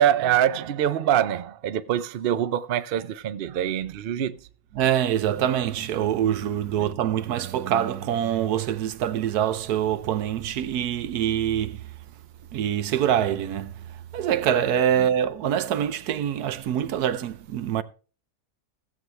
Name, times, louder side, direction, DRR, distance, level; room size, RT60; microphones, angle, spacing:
voice 1, 0.0-4.4 6.8-6.9 15.0-15.1, right 10 dB, 60° right, 0.5 m, -24 dB
voice 2, 4.8-11.9 12.5-17.8, right 10 dB, 80° right, 1.3 m, -25 dB
16.0 x 7.8 x 3.3 m
omnidirectional pair, 1.6 m